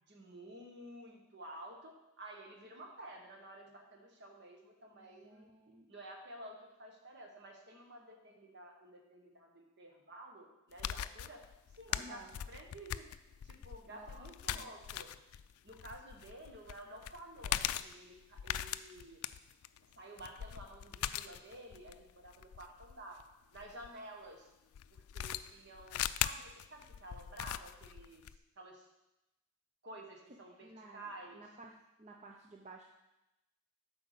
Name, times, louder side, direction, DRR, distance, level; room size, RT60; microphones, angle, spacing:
voice 1, 0.1-5.5 5.9-11.4 11.7-13.1 13.4-15.1 15.6-19.2 19.9-23.2 23.5-24.5 24.9-28.9 29.8-31.4, right 1 dB, 55° right, 2 dB, 1.4 m, -52 dB
voice 2, 4.9-5.9 11.9-12.4 13.9-14.7 30.6-31.7 32.0-32.8, right 2 dB, 30° right, 0 dB, 0.6 m, -54 dB
sound 1, 10.7-23.9 24.7-28.4, left 11 dB, 85° left, 0.3 m, -40 dB
8.0 x 4.8 x 6.7 m, 0.95 s
head